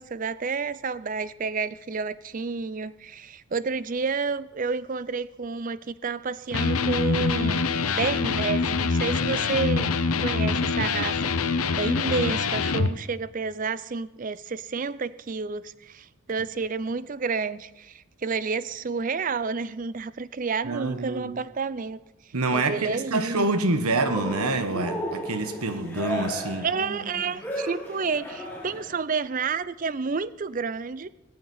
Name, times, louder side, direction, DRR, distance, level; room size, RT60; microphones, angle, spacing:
voice 1, 0.0-9.9 10.2-22.0 22.5-23.5 26.6-31.1, right 4 dB, 35° right, 0.4 m, -30 dB
Electric guitar, 6.5-12.9, left 4 dB, 80° left, 0.8 m, -25 dB
voice 2, 20.6-21.3 22.3-26.7, right 3 dB, 85° right, 1.3 m, -26 dB
Cheering, 24.0-28.9, equal, 10° left, 3.2 m, -34 dB
19.5 x 6.6 x 9.2 m
head